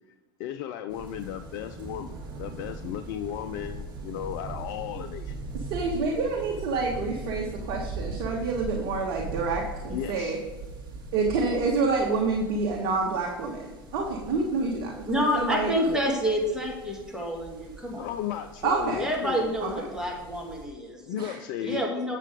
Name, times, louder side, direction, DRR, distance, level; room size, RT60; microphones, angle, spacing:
voice 1, 0.4-5.3 9.9-10.4 15.9-16.0 18.0-19.5 21.0-21.8, left 11 dB, 60° left, 9 dB, 0.5 m, -35 dB
sound 1, 0.9-20.6, right 2 dB, 40° right, 2.8 m, -40 dB
voice 2, 5.5-10.4 11.1-15.7 18.6-19.1 19.6-19.7 21.2-21.4, right 4 dB, 60° right, 0 dB, 1.4 m, -28 dB
voice 3, 15.1-18.1 19.0-21.0 21.6-22.2, equal, 5° right, -2 dB, 2.7 m, -28 dB
8.3 x 7.3 x 3.7 m, 1.2 s
hypercardioid pair, 85°, 12 cm